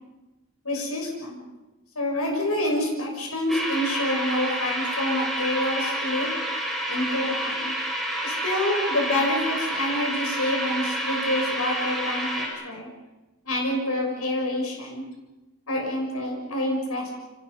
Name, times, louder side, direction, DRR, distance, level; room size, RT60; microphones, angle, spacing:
voice 1, 0.6-1.4 1.9-6.3 6.9-7.7 8.2-12.9 13.4-15.0 15.7-17.1, left 1 dB, 90° left, 1 dB, 6.5 m, -27 dB
sound 1, 3.5-12.5, right 1 dB, ahead, 7.3 m, -29 dB
30.0 x 26.5 x 5.7 m, 1.1 s
head